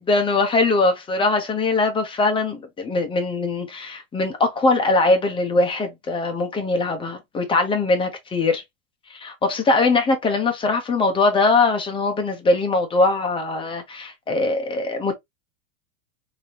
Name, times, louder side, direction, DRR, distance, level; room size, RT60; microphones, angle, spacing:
voice 1, 0.0-8.6 9.1-15.2, left 3 dB, 15° left, 0.7 m, -21 dB
3.3 x 2.8 x 2.8 m
supercardioid pair, 135°, 40 cm